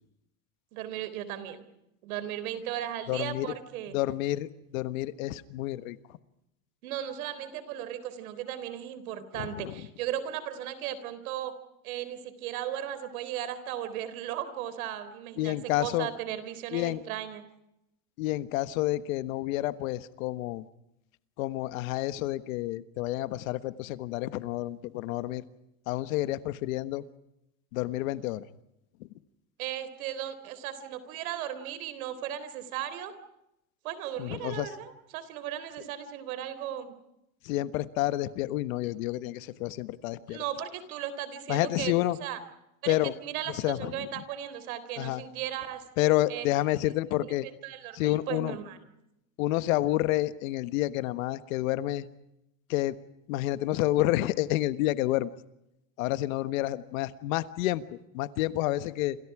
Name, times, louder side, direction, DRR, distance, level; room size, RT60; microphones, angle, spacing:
voice 1, 0.7-1.7 2.0-4.0 6.8-11.5 11.8-17.4 29.6-33.1 33.8-37.0 40.3-41.9 42.2-42.4 42.8-45.8 46.3-46.5 47.3-48.8, right 11 dB, 80° right, 13 dB, 3.8 m, -36 dB
voice 2, 3.1-3.5 3.9-6.0 9.4-9.7 15.4-16.1 16.7-17.0 18.2-20.6 21.4-25.4 25.9-27.0 27.7-28.4 34.2-34.7 37.4-40.4 41.5-42.2 42.9-43.1 43.5-44.1 45.0-45.2 46.0-47.5 47.9-48.6 49.4-52.0 52.7-52.9 53.3-55.3 56.0-59.2, left 16 dB, 70° left, 13 dB, 1.4 m, -29 dB
28.0 x 28.0 x 4.9 m, 0.83 s
supercardioid pair, 170°, 42 cm